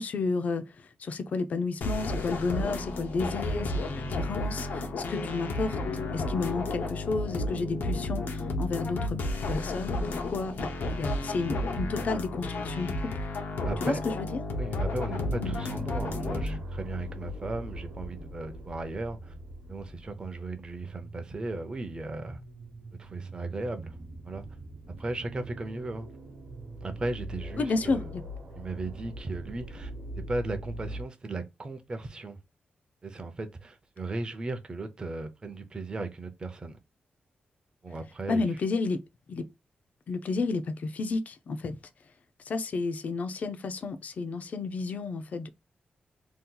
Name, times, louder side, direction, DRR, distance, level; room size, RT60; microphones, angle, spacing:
voice 1, 0.0-13.2 13.8-14.4 15.4-15.6 27.6-28.2 38.3-39.0 39.3-39.5 40.1-41.8 42.5-45.5, left 3 dB, 50° left, 0.4 m, -32 dB
sound 1, 1.8-16.6, left 2 dB, 90° left, 0.7 m, -32 dB
voice 2, 13.6-14.0 14.6-19.3 19.7-22.4 23.0-24.0 24.2-24.4 25.0-26.1 26.8-28.1 28.6-29.9 30.2-32.4 33.0-36.8 37.8-38.5, right 2 dB, 25° right, 0.5 m, -36 dB
sound 2, 14.6-31.0, equal, 60° right, 0.8 m, -42 dB
2.8 x 2.3 x 3.7 m
wide cardioid pair, 175°, 3 cm